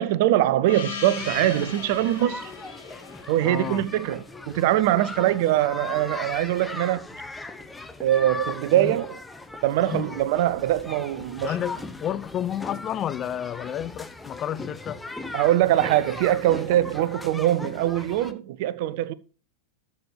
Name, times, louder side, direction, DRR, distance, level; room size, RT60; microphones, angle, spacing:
voice 1, 0.0-2.5 3.3-7.0 8.0-9.2 9.6-11.6 15.3-19.1, right 13 dB, 50° right, 0.7 m, -23 dB
Gong, 0.7-5.0, left 5 dB, 70° left, 3.5 m, -39 dB
sound 1, 1.1-18.3, left 2 dB, 10° left, 1.0 m, -39 dB
voice 2, 3.4-3.8 8.7-9.0 9.9-10.1 11.4-15.0, left 10 dB, 30° left, 0.4 m, -31 dB
13.0 x 7.0 x 3.2 m
figure-of-eight pair, 90°, 0 cm